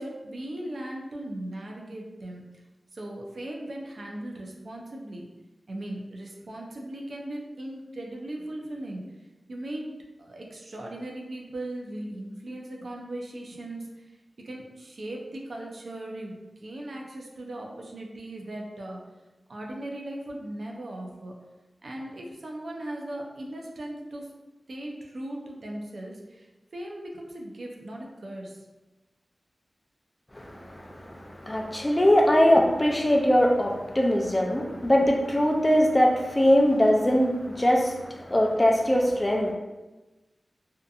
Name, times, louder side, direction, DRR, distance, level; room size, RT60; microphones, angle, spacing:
voice 1, 0.0-2.4 2.9-5.3 5.7-9.0 9.5-9.9 10.2-14.2 14.4-19.0 19.5-21.3 21.8-24.3 24.7-26.5 26.7-28.6, right 1 dB, 70° right, 0 dB, 0.4 m, -38 dB
voice 2, 30.3-39.5, equal, 25° left, 1 dB, 0.4 m, -22 dB
2.7 x 2.4 x 2.3 m, 1.1 s
wide cardioid pair, 55°, 0 cm